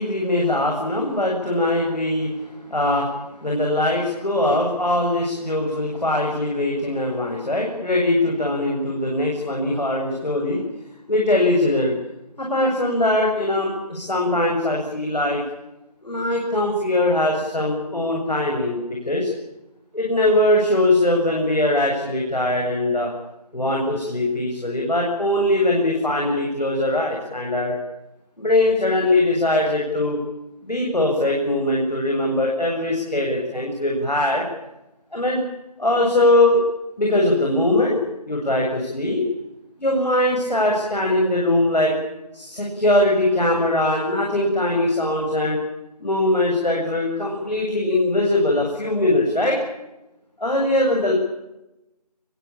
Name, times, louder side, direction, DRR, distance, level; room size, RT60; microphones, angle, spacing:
voice 1, 0.0-10.7 11.1-11.9 12.4-15.4 16.0-19.3 19.9-23.1 23.5-27.8 28.4-30.2 30.6-34.4 35.1-35.4 35.8-36.6 37.0-39.2 39.8-41.9 42.3-45.6 46.0-49.6 50.4-51.1, left 1 dB, 85° left, -1 dB, 8.0 m, -21 dB
23.0 x 22.5 x 8.9 m, 0.95 s
figure-of-eight pair, 170°, 21 cm